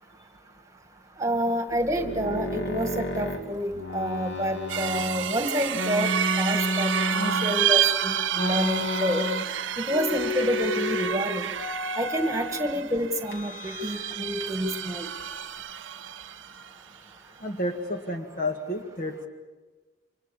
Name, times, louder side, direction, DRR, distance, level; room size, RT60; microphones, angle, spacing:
voice 1, 1.2-6.1 6.4-9.3 9.8-11.5 12.0-15.1, equal, 15° right, 5 dB, 2.0 m, -28 dB
sound 1, 1.7-5.3 5.7-7.8 8.3-9.6 9.9-11.2 11.5-12.7 13.3-14.1 14.4-15.6, left 2 dB, 70° left, 2.9 m, -32 dB
sound 2, 4.7-16.7, right 10 dB, 75° right, 0.8 m, -30 dB
voice 2, 17.4-19.3, left 1 dB, 45° left, 3 dB, 1.9 m, -31 dB
29.0 x 26.0 x 7.2 m, 1.3 s
head